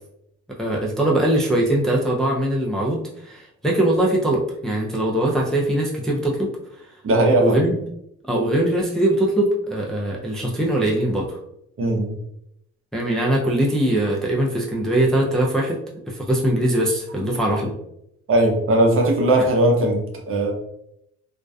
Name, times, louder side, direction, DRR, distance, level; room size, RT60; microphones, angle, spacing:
voice 1, 0.6-6.5 7.4-7.7 8.2-11.4 12.9-15.8 16.1-17.7, right 1 dB, ahead, -3 dB, 0.4 m, -21 dB
voice 2, 7.0-7.6 11.8-12.1 18.3-20.5, right 1 dB, 45° right, 1 dB, 0.6 m, -18 dB
2.5 x 2.1 x 2.3 m, 0.77 s
cardioid pair, 90°, 30 cm